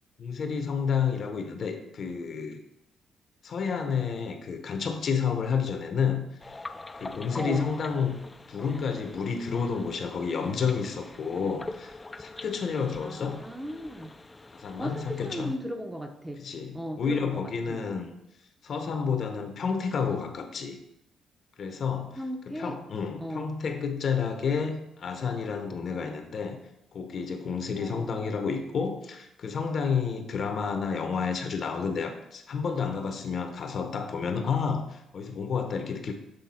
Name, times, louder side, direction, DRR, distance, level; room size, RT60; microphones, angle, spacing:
voice 1, 0.2-2.6 3.4-6.3 7.0-8.2 8.5-13.4 14.5-15.5 16.4-18.1 18.6-20.8 21.6-22.2 22.5-26.6 26.9-36.1, left 6 dB, 55° left, 6 dB, 0.8 m, -30 dB
sound 1, 6.4-15.6, left 2 dB, 20° left, 0.4 m, -45 dB
voice 2, 7.4-7.7 13.0-14.1 14.8-16.4 16.7-17.4 17.7-17.8 22.2-22.8 23.2-23.5 27.8-28.1, equal, 10° right, 4 dB, 0.7 m, -36 dB
7.8 x 3.4 x 4.2 m, 0.82 s
cardioid pair, 90°, 0 cm